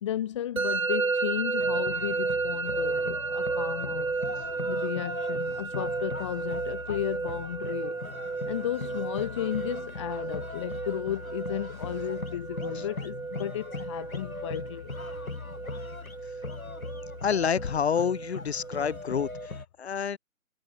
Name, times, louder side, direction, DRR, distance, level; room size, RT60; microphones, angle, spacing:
voice 1, 0.0-4.1 4.7-8.0 8.5-14.9, left 11 dB, 20° left, 1.1 m, -34 dB
Musical instrument, 0.6-19.5, right 4 dB, 70° right, 4.7 m, -33 dB
sound 1, 1.6-19.7, left 3 dB, 75° left, 6.4 m, -40 dB
voice 2, 17.2-20.2, left 7 dB, 50° left, 2.8 m, -28 dB
figure-of-eight pair, 145°, 42 cm